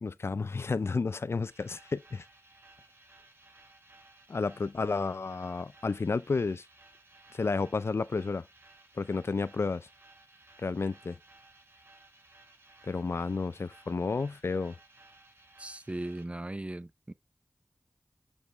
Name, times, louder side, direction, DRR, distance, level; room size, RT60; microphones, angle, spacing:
voice 1, 0.0-2.2 4.3-6.7 7.3-8.4 9.0-9.9 10.6-11.2 12.9-14.7, left 4 dB, 70° left, 0.4 m, -31 dB
sound 1, 1.5-16.2, right 2 dB, 60° right, 2.0 m, -58 dB
voice 2, 15.6-17.1, right 1 dB, 30° right, 0.5 m, -38 dB
7.1 x 5.3 x 3.1 m
cardioid pair, 40°, 4 cm